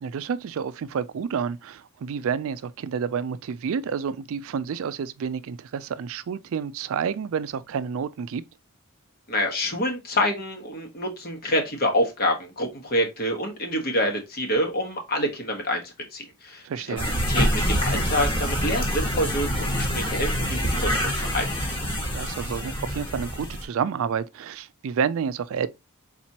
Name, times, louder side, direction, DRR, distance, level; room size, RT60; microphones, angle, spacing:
voice 1, 0.0-8.4 16.6-17.1 22.0-25.7, right 6 dB, 65° right, 0.3 m, -29 dB
voice 2, 9.3-17.0 17.3-21.4, left 1 dB, 45° left, 1.3 m, -27 dB
sound 1, 17.0-23.6, equal, 20° left, 1.4 m, -26 dB
4.4 x 4.0 x 2.8 m
head